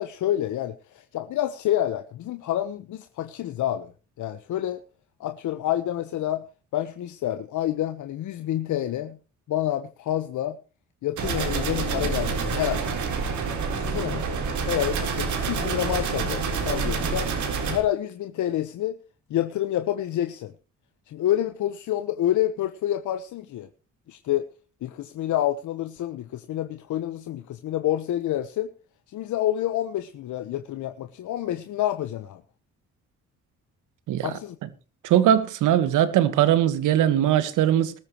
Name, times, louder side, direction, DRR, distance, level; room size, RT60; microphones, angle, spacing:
voice 1, 0.0-4.8 5.2-6.4 6.7-9.2 9.5-10.6 11.0-12.8 13.7-17.3 17.7-19.0 19.3-20.5 21.1-23.7 24.1-24.5 24.8-28.7 29.1-32.4 34.2-34.6, left 12 dB, 75° left, 1.1 m, -28 dB
sound 1, 11.2-17.8, right 5 dB, 70° right, 4.0 m, -27 dB
voice 2, 35.0-37.9, right 11 dB, 90° right, 1.6 m, -20 dB
20.0 x 13.5 x 3.0 m
cardioid pair, 90°, 30 cm